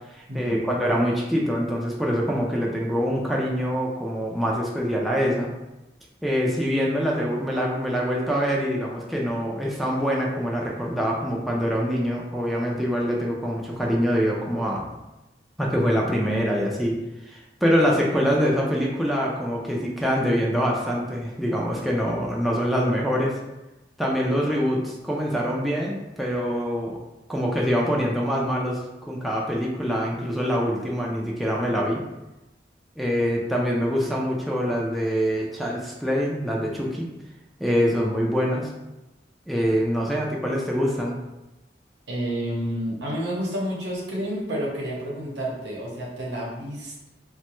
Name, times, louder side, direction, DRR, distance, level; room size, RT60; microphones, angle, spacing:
voice 1, 0.1-5.5 6.2-15.0 15.6-17.0 17.3-23.4 24.0-27.0 27.3-28.8 29.1-32.0 33.0-37.1 37.6-38.7 39.5-41.2, equal, ahead, -4 dB, 0.3 m, -24 dB
voice 2, 42.1-47.1, equal, 80° right, -3 dB, 0.8 m, -30 dB
3.0 x 2.2 x 2.9 m, 0.99 s
head